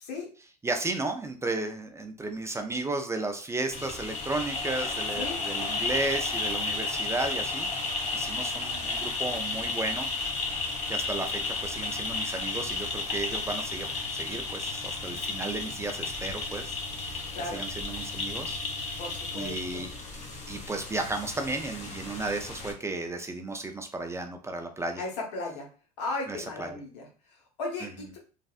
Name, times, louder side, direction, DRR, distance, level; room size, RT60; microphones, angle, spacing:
voice 1, 0.6-7.7 8.1-10.1 10.9-13.9 14.1-17.2 17.5-18.6 19.3-19.9 20.5-25.0 26.3-26.7 27.8-27.9, right 2 dB, 15° right, 5 dB, 0.4 m, -34 dB
sound 1, 3.7-22.7, left 3 dB, 35° left, 1.0 m, -33 dB
voice 2, 17.3-17.7 19.0-19.9 25.0-25.7 26.0-27.1 27.6-27.9, left 2 dB, 80° left, 0 dB, 1.1 m, -35 dB
3.2 x 2.5 x 2.4 m, 0.37 s
hypercardioid pair, 85°, 21 cm